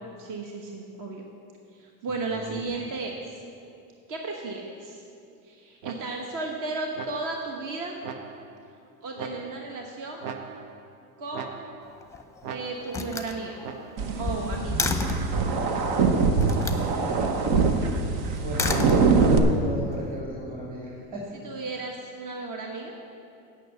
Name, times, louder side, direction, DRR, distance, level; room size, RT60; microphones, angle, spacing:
voice 1, 0.2-1.2 1.7-3.2 4.1-5.0 5.4-8.0 9.0-10.2 11.2-11.6 12.5-13.6 14.2-14.9 21.3-23.0, right 3 dB, 45° right, 1 dB, 1.2 m, -34 dB
sound 1, 5.8-6.4 7.0-7.5 8.0-8.7 9.2-9.8 10.2-11.0 11.3-12.0 12.4-13.1 13.6-14.2 15.7-16.3, right 6 dB, 80° right, 0.8 m, -41 dB
Slam, 11.8-12.4 12.9-15.4 16.4-16.9 18.4-19.5, left 3 dB, 5° left, 0.8 m, -31 dB
sound 2, 14.0-19.4, right 4 dB, 65° right, 1.1 m, -23 dB
voice 2, 16.7-17.3 17.8-18.1 18.4-21.2, equal, 20° right, -4 dB, 2.2 m, -35 dB
9.1 x 6.1 x 8.1 m, 2.5 s
hypercardioid pair, 80°, 46 cm